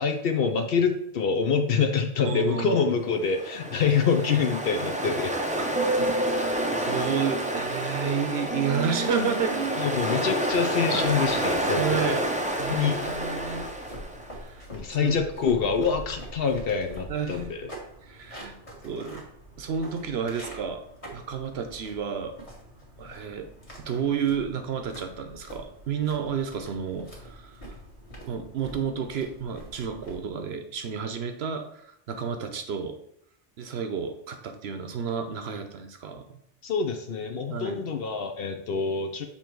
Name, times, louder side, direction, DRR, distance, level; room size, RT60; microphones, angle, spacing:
voice 1, 0.0-5.3 9.8-12.3 12.7-13.0 14.7-17.7 36.6-39.3, left 6 dB, 60° left, 5 dB, 0.7 m, -26 dB
voice 2, 2.2-2.9 5.6-6.1 6.4-9.9 10.8-11.2 11.8-12.3 12.6-13.7 14.4-14.7 15.0-15.2 17.1-17.4 18.0-18.5 18.8-19.2 19.6-20.8 21.1-22.3 23.0-23.5 23.8-27.6 28.3-33.0 33.6-36.4 37.5-37.8, right 7 dB, 65° right, 7 dB, 0.9 m, -31 dB
Ocean, 3.2-14.3, right 1 dB, 10° right, 0.3 m, -28 dB
sound 1, 11.0-30.3, right 1 dB, 30° left, 1.6 m, -45 dB
6.9 x 3.0 x 4.5 m, 0.73 s
omnidirectional pair, 1.2 m